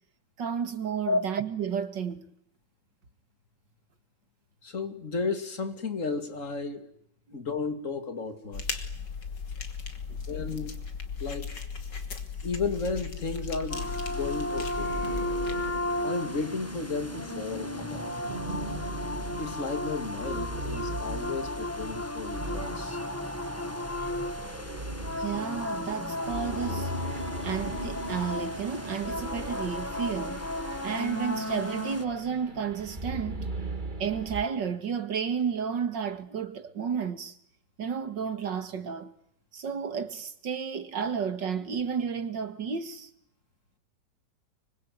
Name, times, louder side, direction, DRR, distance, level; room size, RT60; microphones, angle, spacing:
voice 1, 0.4-2.3 7.3-7.4 10.1-10.2 25.2-26.9 27.4-30.4 30.8-33.5 34.0-37.4 37.8-39.1 39.5-43.1, right 7 dB, 85° right, 2.7 m, -32 dB
voice 2, 4.6-6.9 7.3-8.9 10.3-10.8 11.2-11.5 12.4-15.0 16.0-18.1 19.4-23.0, left 4 dB, 45° left, 2.8 m, -33 dB
sound 1, 8.5-15.8, left 5 dB, 80° left, 3.3 m, -37 dB
sound 2, 13.7-32.0, left 1 dB, 10° left, 1.2 m, -35 dB
sound 3, 14.7-34.4, right 2 dB, 25° right, 2.3 m, -39 dB
25.5 x 24.5 x 9.6 m
omnidirectional pair, 1.9 m